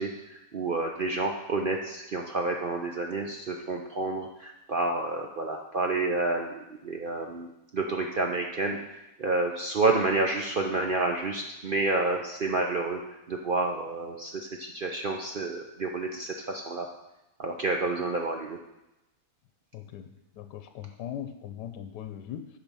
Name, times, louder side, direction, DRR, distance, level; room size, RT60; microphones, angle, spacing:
voice 1, 0.0-8.8 9.2-13.0 13.3-16.9 17.4-18.6, right 3 dB, 65° right, 2 dB, 0.5 m, -29 dB
voice 2, 19.7-22.5, left 10 dB, 90° left, 8 dB, 1.2 m, -40 dB
8.7 x 5.2 x 6.1 m, 0.94 s
omnidirectional pair, 1.8 m